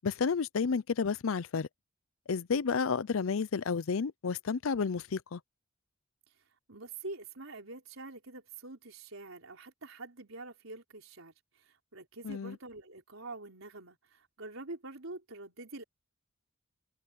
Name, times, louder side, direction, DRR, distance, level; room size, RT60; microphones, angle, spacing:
voice 1, 0.0-1.7 2.3-5.4 12.2-12.6, left 5 dB, 85° left, 0.5 m, -31 dB
voice 2, 6.7-15.8, right 2 dB, 90° right, 4.1 m, -46 dB
head